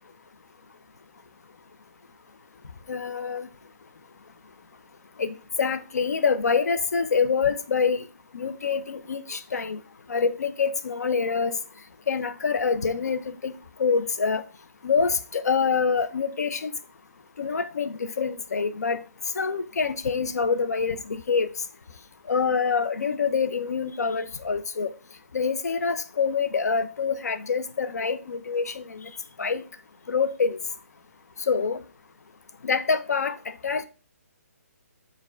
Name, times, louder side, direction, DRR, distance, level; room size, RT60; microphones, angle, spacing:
voice 1, 2.9-3.5 5.2-5.3 5.6-8.1 8.3-9.8 10.1-11.5 12.1-13.5 13.8-14.4 14.8-16.7 17.4-19.0 19.4-21.5 22.3-24.9 25.3-29.1 29.4-29.6 30.1-30.6 31.5-31.8 32.6-33.4 33.6-33.8, left 5 dB, 85° left, 0.5 m, -26 dB
4.6 x 2.3 x 4.5 m
hypercardioid pair, 165°, 9 cm